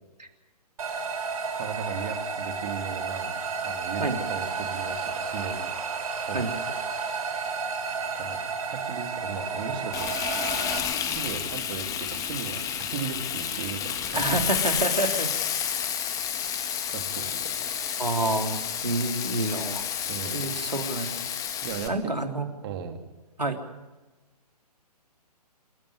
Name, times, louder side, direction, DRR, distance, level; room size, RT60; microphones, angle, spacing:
sound 1, 0.8-10.8, right 5 dB, 60° right, 4.4 m, -32 dB
voice 1, 1.5-5.7 6.3-6.5 6.9-7.2 8.2-10.1 11.0-14.4 16.9-18.0 20.1-20.5 21.6-22.3 22.6-23.0, right 7 dB, 35° right, 5 dB, 3.1 m, -37 dB
Frying (food), 9.9-21.9, left 9 dB, 15° left, 1.6 m, -30 dB
voice 2, 14.1-15.3 15.9-16.9 18.0-19.8 20.3-21.1 21.9-22.4 23.4-23.6, right 2 dB, 90° right, 4 dB, 3.4 m, -29 dB
27.5 x 12.5 x 9.7 m, 1.2 s
figure-of-eight pair, 130°, 21 cm